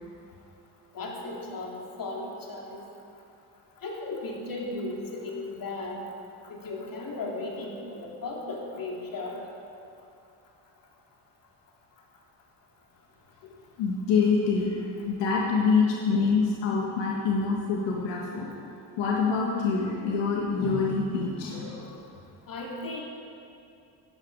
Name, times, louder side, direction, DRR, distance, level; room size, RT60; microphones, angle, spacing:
voice 1, 0.9-2.8 3.8-6.0 6.5-9.4 22.5-23.0, left 2 dB, 50° left, -2 dB, 3.1 m, -36 dB
voice 2, 13.4-18.5 19.0-22.0, left 4 dB, 80° left, -3 dB, 2.0 m, -26 dB
15.5 x 11.0 x 4.9 m, 2.6 s
supercardioid pair, 85°, 43 cm